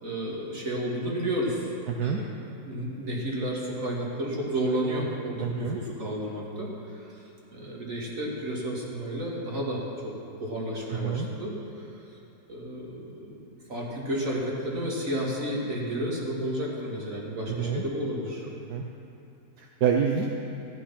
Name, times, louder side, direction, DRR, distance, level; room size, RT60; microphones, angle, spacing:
voice 1, 0.0-1.7 2.0-2.3 2.6-6.7 7.5-10.1 10.4-11.5 11.8-11.9 12.5-18.5, right 1 dB, 55° right, -4 dB, 2.7 m, -31 dB
voice 2, 1.9-2.2 5.4-5.8 10.9-11.3 17.5-17.8 18.7-18.8 19.6-20.3, right 7 dB, 80° right, 1 dB, 1.4 m, -27 dB
14.0 x 10.5 x 5.8 m, 2.7 s
omnidirectional pair, 1.7 m